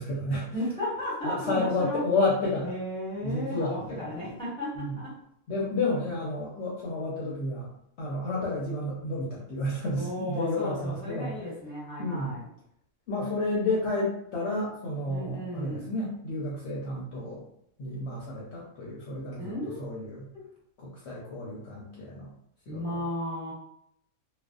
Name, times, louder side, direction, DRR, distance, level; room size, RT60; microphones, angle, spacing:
voice 1, 0.0-0.5 1.2-2.7 3.2-4.2 4.8-5.0 5.5-7.7 8.0-11.3 12.0-12.4 13.1-17.4 17.8-19.5 19.8-20.3 20.8-22.3 22.7-23.0, left 2 dB, 65° left, -5 dB, 0.8 m, -31 dB
voice 2, 0.5-2.0 2.6-5.1 9.9-12.5 15.1-15.9 19.4-20.1 22.7-23.5, left 1 dB, 5° left, -10 dB, 1.3 m, -34 dB
2.4 x 2.3 x 2.3 m, 0.73 s
omnidirectional pair, 1.4 m